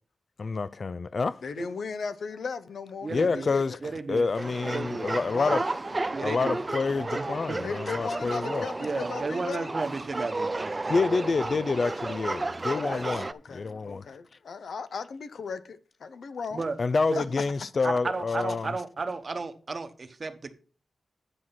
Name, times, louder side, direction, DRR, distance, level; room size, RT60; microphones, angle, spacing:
voice 1, 0.4-1.4 3.1-3.8 4.1-5.6 6.2-8.7 10.9-14.1 16.8-18.7, left 4 dB, 50° left, 0.3 m, -28 dB
voice 2, 1.4-3.8 5.4-5.6 7.6-9.7 12.7-16.6 17.2-17.3, left 5 dB, 80° left, 0.7 m, -37 dB
voice 3, 3.0-3.5 3.8-4.3 4.7-5.1 6.1-6.6 7.1-7.6 8.8-11.2 16.5-16.8 17.1-17.2 17.8-20.5, right 3 dB, 45° right, 1.1 m, -33 dB
sound 1, 4.4-13.3, right 2 dB, 30° right, 0.4 m, -32 dB
9.9 x 4.7 x 5.7 m
cardioid pair, 80°, 0 cm